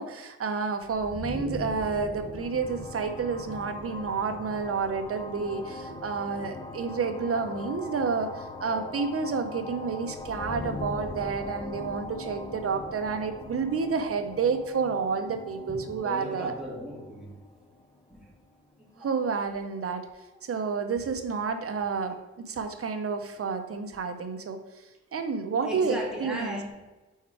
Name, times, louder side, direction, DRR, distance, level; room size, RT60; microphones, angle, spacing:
voice 1, 0.0-16.5 19.0-20.1 20.4-22.2 22.5-24.6 25.1-26.6, right 5 dB, 50° right, 7 dB, 0.7 m, -30 dB
sound 1, 0.8-18.5, left 2 dB, 15° left, 0.4 m, -40 dB
voice 2, 15.8-17.4 18.1-18.3 18.8-19.1 23.4-23.5 25.6-26.7, equal, 5° right, -3 dB, 1.8 m, -37 dB
4.6 x 4.6 x 4.7 m, 1.1 s
cardioid pair, 100°, 29 cm